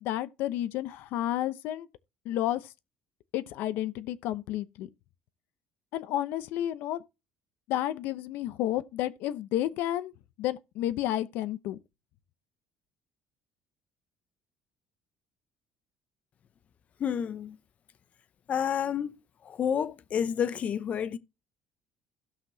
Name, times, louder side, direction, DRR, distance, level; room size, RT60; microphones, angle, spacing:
voice 1, 0.0-1.9 2.2-2.7 3.3-4.9 5.9-7.0 7.7-10.1 10.4-11.8, left 13 dB, 75° left, 0.8 m, -31 dB
voice 2, 17.0-17.6 18.5-19.1 19.4-21.2, left 8 dB, 45° left, 0.8 m, -29 dB
16.5 x 5.9 x 2.8 m
cardioid pair, 115°, 3 cm